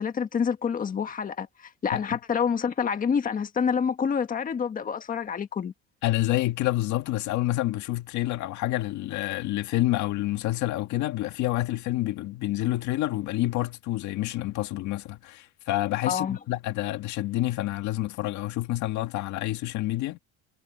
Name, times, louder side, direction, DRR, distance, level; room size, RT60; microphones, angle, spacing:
voice 1, 0.0-5.7 16.1-16.4, left 6 dB, 30° left, 1.6 m, -27 dB
voice 2, 6.0-20.2, left 16 dB, 75° left, 1.9 m, -28 dB
cardioid pair, 150°, 29 cm